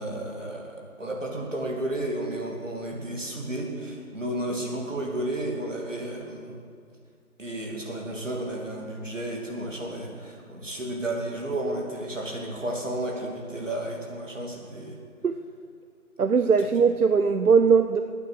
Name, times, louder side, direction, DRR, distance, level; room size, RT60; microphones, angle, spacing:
voice 1, 0.0-6.5 7.4-15.0 16.6-16.7, right 1 dB, 55° right, -1 dB, 2.9 m, -32 dB
voice 2, 16.2-18.0, right 5 dB, 80° right, 9 dB, 0.8 m, -20 dB
17.0 x 9.1 x 6.5 m, 2.2 s
figure-of-eight pair, 165°, 44 cm